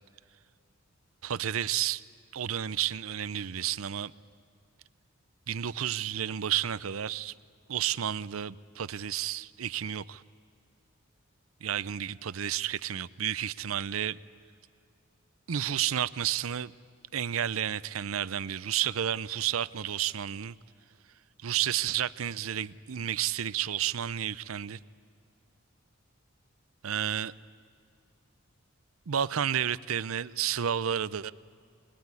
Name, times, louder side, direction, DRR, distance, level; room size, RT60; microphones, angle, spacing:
voice 1, 1.2-2.0 2.3-4.1 5.5-7.3 7.7-10.2 11.6-14.2 15.5-16.7 17.1-20.5 21.4-24.8 26.8-27.3 29.1-31.3, right 10 dB, 85° right, 0.6 m, -31 dB
25.5 x 21.0 x 9.7 m
head